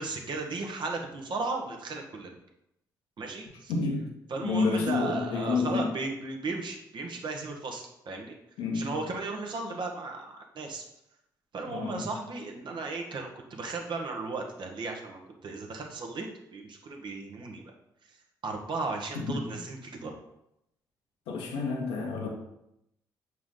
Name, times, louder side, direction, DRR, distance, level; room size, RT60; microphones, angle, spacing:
voice 1, 0.0-2.3 3.2-3.7 4.3-8.3 8.7-10.8 11.5-16.3 16.5-17.7 18.1-18.2 18.4-20.1, right 3 dB, 55° right, 2 dB, 1.5 m, -35 dB
voice 2, 3.7-4.1 4.4-5.9 8.6-8.9 11.7-12.1 19.1-19.4 21.3-22.3, left 4 dB, 75° left, 0 dB, 1.4 m, -29 dB
7.5 x 4.7 x 3.8 m, 0.82 s
hypercardioid pair, 45°, 9 cm